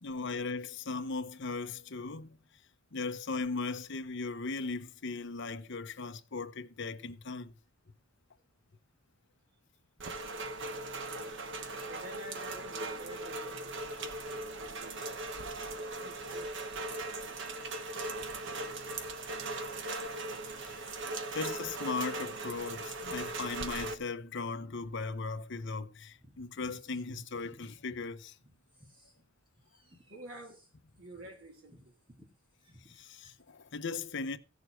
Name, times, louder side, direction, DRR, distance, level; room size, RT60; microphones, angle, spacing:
voice 1, 0.0-2.4 2.9-7.5 19.1-19.2 20.6-28.4 32.8-34.4, left 4 dB, 60° left, 0.9 m, -38 dB
Rain, 10.0-24.0, right 2 dB, 65° right, 1.2 m, -39 dB
voice 2, 11.8-16.8 30.1-30.6 31.0-31.9, right 1 dB, 85° right, 2.6 m, -50 dB
sound 1, 26.1-28.0 28.4-33.5, equal, 25° right, 2.5 m, -60 dB
15.5 x 6.9 x 4.6 m
head